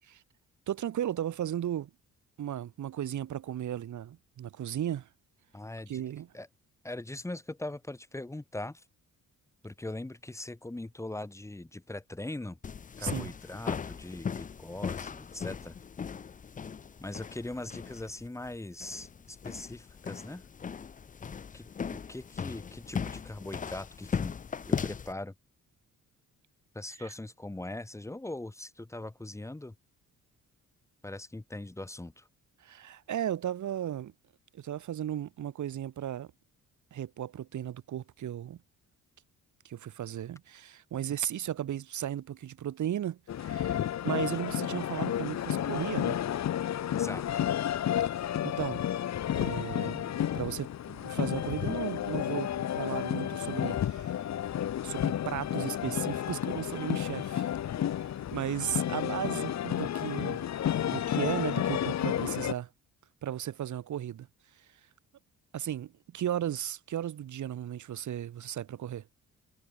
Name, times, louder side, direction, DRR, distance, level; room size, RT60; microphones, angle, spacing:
voice 1, 0.7-1.9 2.4-5.1 5.9-6.3 13.0-13.3 32.6-34.1 34.5-36.3 36.9-38.6 39.6-43.8 44.0-46.2 48.4-48.8 49.3-54.2 54.8-57.5 58.3-60.5 60.8-62.7 63.2-64.3 65.5-69.0, right 11 dB, 60° right, 3.3 m, -35 dB
voice 2, 5.5-6.0 6.3-6.5 6.8-8.8 9.6-12.6 13.0-15.8 17.0-20.4 21.5-24.3 24.6-25.3 26.7-29.7 31.0-32.3 46.9-47.4, left 2 dB, 10° left, 3.0 m, -41 dB
sound 1, 12.6-25.1, left 6 dB, 25° left, 0.6 m, -38 dB
sound 2, 43.3-62.5, left 11 dB, 55° left, 1.5 m, -31 dB
cardioid pair, 170°, 33 cm